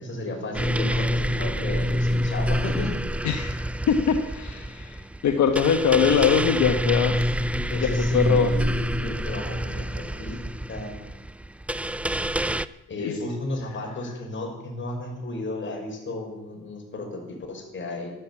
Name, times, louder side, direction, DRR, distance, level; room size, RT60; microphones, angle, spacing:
voice 1, 0.0-3.0 5.9-6.2 7.5-11.0 12.9-18.1, left 2 dB, 40° left, 1 dB, 5.9 m, -33 dB
sound 1, 0.5-12.7, equal, 5° right, 0.4 m, -27 dB
voice 2, 3.2-3.6 3.9-7.2 7.8-8.5 13.0-13.1, left 7 dB, 65° left, 6 dB, 1.3 m, -22 dB
13.0 x 12.5 x 8.5 m, 1.0 s
cardioid pair, 90°, 30 cm